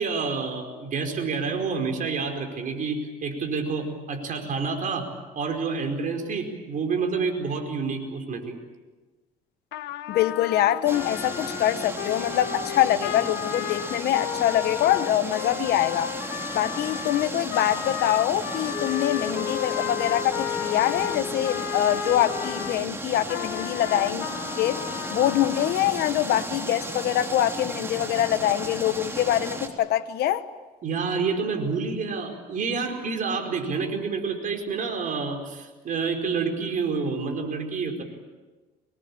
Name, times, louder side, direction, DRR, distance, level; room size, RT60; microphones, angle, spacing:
voice 1, 0.0-5.1 5.3-8.6 30.8-38.0, right 4 dB, 50° right, 4.9 m, -28 dB
Trumpet, 9.7-22.8 23.2-25.8, left 13 dB, 90° left, 1.4 m, -34 dB
voice 2, 10.1-16.1 16.5-24.3 24.6-24.8 25.1-30.4, left 12 dB, 75° left, 1.1 m, -24 dB
sound 1, 10.8-29.7, right 2 dB, 15° right, 3.6 m, -35 dB
Wind instrument woodwind instrument, 18.7-22.9, left 6 dB, 20° left, 2.8 m, -35 dB
25.0 x 21.5 x 8.7 m
cardioid pair, 110°, 17 cm